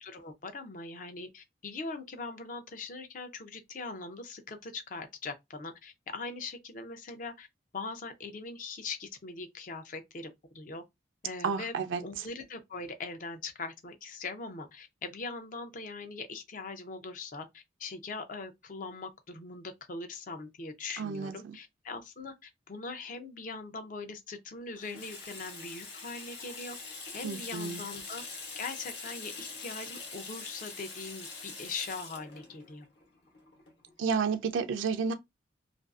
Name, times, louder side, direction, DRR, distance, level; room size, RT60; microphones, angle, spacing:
voice 1, 0.0-7.5 7.7-10.8 11.2-11.7 12.0-26.8 27.1-28.2 28.6-32.9, left 3 dB, 45° left, 0.4 m, -41 dB
voice 2, 11.4-12.3 21.0-21.6 27.2-27.8 34.0-35.1, right 5 dB, 85° right, 0.4 m, -31 dB
Water tap faucet / Sink (filling or washing), 24.8-34.1, left 4 dB, 60° left, 1.0 m, -44 dB
2.5 x 2.3 x 2.3 m
head